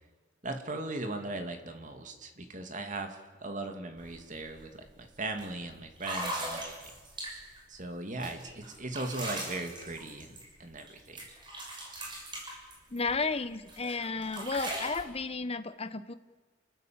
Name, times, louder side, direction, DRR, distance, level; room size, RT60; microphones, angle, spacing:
voice 1, 0.4-6.9 7.7-11.3, right 2 dB, 40° right, 5 dB, 2.7 m, -38 dB
sound 1, 4.0-4.1 4.5-4.8 5.4-5.5 6.0-7.6 8.2-10.9 11.2-13.3 13.7-15.0, right 1 dB, 25° right, 6.3 m, -39 dB
voice 2, 12.9-16.1, left 4 dB, 30° left, 12 dB, 1.0 m, -33 dB
29.5 x 14.0 x 8.9 m, 1.4 s
head